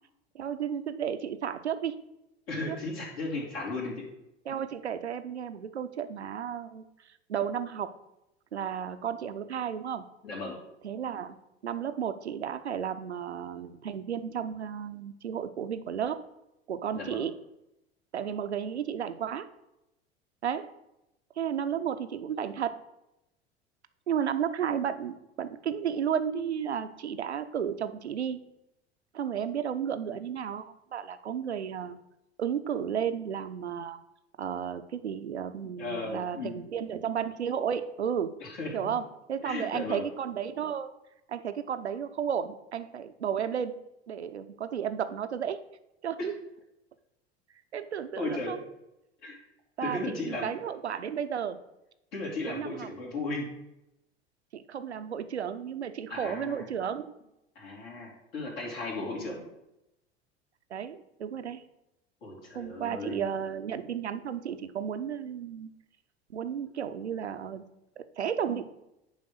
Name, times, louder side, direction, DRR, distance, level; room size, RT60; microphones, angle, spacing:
voice 1, 0.3-2.0 2.7-2.8 3.7-3.8 4.5-7.9 8.5-10.0 10.8-11.4 11.6-16.2 16.7-17.4 18.1-19.5 20.4-20.7 21.4-22.7 24.1-28.4 29.1-32.0 32.4-34.0 34.4-38.4 38.7-40.9 41.3-43.8 44.1-45.6 46.0-46.3 47.7-48.6 49.8-51.6 52.4-52.9 54.5-57.1 60.7-61.6 62.5-65.7 66.3-67.6 68.0-68.6, right 8 dB, 80° right, 10 dB, 0.6 m, -33 dB
voice 2, 2.5-4.1 10.2-10.5 16.9-17.2 35.6-36.5 38.4-38.9 39.4-40.0 48.2-48.6 49.2-49.4 49.8-50.5 52.1-53.4 56.1-56.6 57.5-59.4 62.2-63.2, left 2 dB, 60° left, -2 dB, 2.9 m, -35 dB
9.5 x 3.8 x 6.3 m, 0.88 s
figure-of-eight pair, 75°, 33 cm